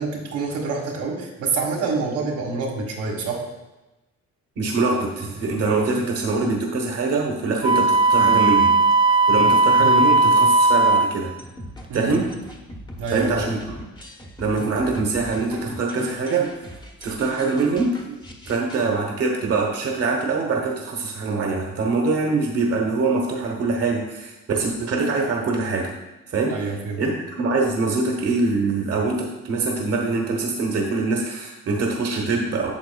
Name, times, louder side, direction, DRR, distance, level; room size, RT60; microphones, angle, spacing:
voice 1, 0.0-3.4 11.9-12.2 13.0-13.6 26.5-27.0, right 4 dB, 85° right, -2 dB, 1.6 m, -27 dB
voice 2, 4.6-8.8 9.3-11.3 11.9-12.3 13.1-13.8 14.4-16.5 17.0-18.2 18.4-25.9 26.3-26.6 27.0-32.7, right 3 dB, 50° right, 0 dB, 1.2 m, -24 dB
Wind instrument woodwind instrument, 7.6-11.2, right 3 dB, 15° right, 0.4 m, -17 dB
sound 1, 11.4-18.9, equal, 15° left, 1.0 m, -41 dB
8.4 x 6.0 x 2.3 m, 1.0 s
cardioid pair, 90°, 30 cm